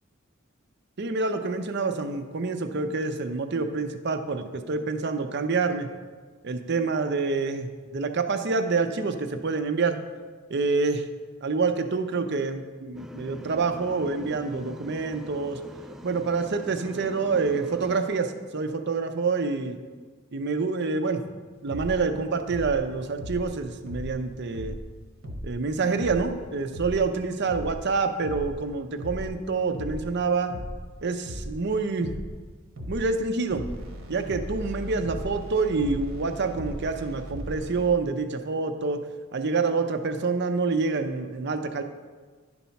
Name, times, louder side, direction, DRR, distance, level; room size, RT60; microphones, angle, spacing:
voice 1, 1.0-5.9 6.4-10.0 10.5-11.1 11.4-15.6 16.0-19.8 20.3-21.2 21.6-24.8 25.4-30.5 31.0-32.2 32.9-33.7 34.1-39.0 39.3-41.8, right 4 dB, 55° right, 8 dB, 0.6 m, -27 dB
sound 1, 12.9-18.0, equal, ahead, 0.3 m, -42 dB
sound 2, 21.7-22.0 22.5-22.8 23.2-23.5 23.9-24.1 24.5-24.8 25.2-25.5 26.0-26.3 26.7-27.0 27.5-27.8 28.2-28.5 29.0-29.3 29.7-30.1 30.5-30.8 31.3-31.6 32.0-32.3 32.8-33.1 33.5-37.9, equal, 85° right, 1.2 m, -36 dB
11.0 x 4.1 x 5.7 m, 1.4 s
head